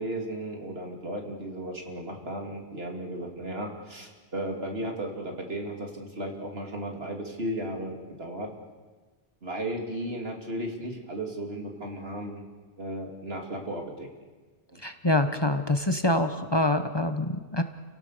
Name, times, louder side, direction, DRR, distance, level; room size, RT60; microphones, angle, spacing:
voice 1, 0.0-8.5 9.4-12.4 12.8-14.1 14.7-14.8, right 1 dB, 75° right, 1 dB, 3.3 m, -35 dB
voice 2, 14.8-17.6, left 1 dB, 25° left, 7 dB, 1.1 m, -25 dB
29.5 x 17.5 x 6.8 m, 1.3 s
omnidirectional pair, 1.0 m